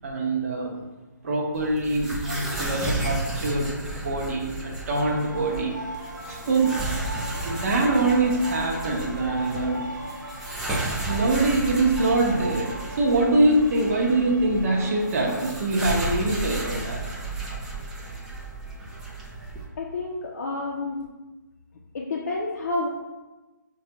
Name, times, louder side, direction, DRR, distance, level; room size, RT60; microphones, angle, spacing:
voice 1, 0.0-0.8 1.2-6.8 7.4-9.8 11.1-12.7 13.0-17.0, right 2 dB, 45° right, -1 dB, 0.8 m, -24 dB
sound 1, 1.5-19.6, right 2 dB, 5° right, 0.3 m, -33 dB
sound 2, 4.8-15.5, right 2 dB, 80° right, 1.0 m, -39 dB
voice 2, 19.8-21.0 21.9-22.9, left 2 dB, 55° left, -3 dB, 0.5 m, -29 dB
5.6 x 2.3 x 2.8 m, 1.1 s
hypercardioid pair, 155°, 10 cm